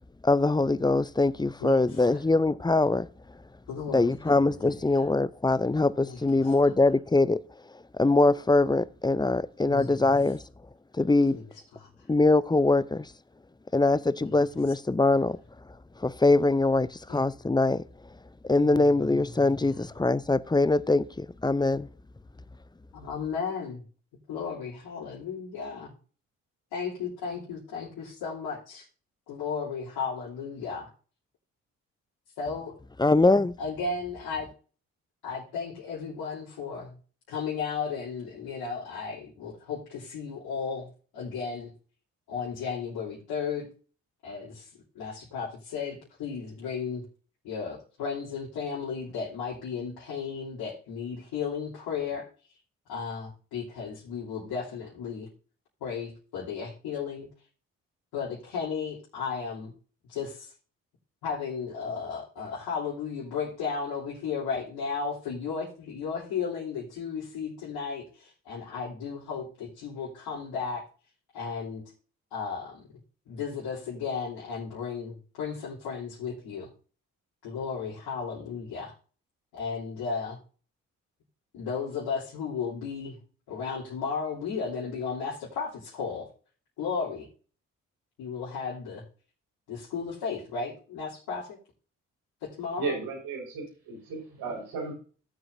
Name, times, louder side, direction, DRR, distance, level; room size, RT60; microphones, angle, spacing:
voice 1, 0.2-3.1 3.9-7.4 7.9-10.4 10.9-11.4 12.1-13.1 13.7-15.4 16.0-17.8 18.4-21.9 33.0-33.5, left 2 dB, 10° left, 0.6 m, -23 dB
voice 2, 1.6-2.2 3.7-4.7 6.1-6.5 9.6-9.9 11.3-11.4 11.7-11.9 14.2-14.3 17.1-17.2 18.6-19.2 19.4-19.7 22.9-23.8 24.3-25.9 26.7-28.8 29.3-30.9 32.4-32.7 33.6-34.5 35.2-37.0 37.3-41.7 42.3-43.7 44.2-44.7 44.9-47.0 47.4-52.3 52.9-55.3 55.8-57.3 58.1-59.7 60.1-60.5 61.2-70.8 71.3-71.8 72.3-72.8 73.3-76.7 77.4-78.9 79.5-80.4 81.5-83.2 83.5-86.3 86.8-87.2 88.2-89.0 89.7-91.6 92.4-92.9, left 5 dB, 70° left, 3.3 m, -34 dB
voice 3, 92.8-94.9, right 4 dB, 70° right, 5.0 m, -34 dB
16.5 x 7.9 x 2.7 m
hypercardioid pair, 40°, 38 cm